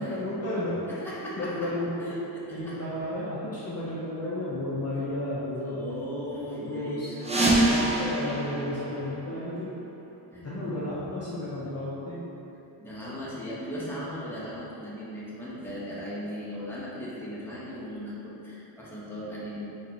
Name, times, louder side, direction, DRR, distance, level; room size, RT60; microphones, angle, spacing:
voice 1, 0.0-1.0 1.4-2.1 2.5-6.1 6.6-7.2 7.4-9.7 10.4-12.2, left 1 dB, 30° left, -8 dB, 0.6 m, -32 dB
voice 2, 0.9-1.7 2.0-2.8 4.9-5.0 5.6-7.8 10.3-10.9 12.8-19.6, equal, 5° left, -8 dB, 1.0 m, -38 dB
sound 1, 7.2-9.8, right 1 dB, 15° right, 0.6 m, -26 dB
3.9 x 3.0 x 2.8 m, 3.0 s
cardioid pair, 65°, 48 cm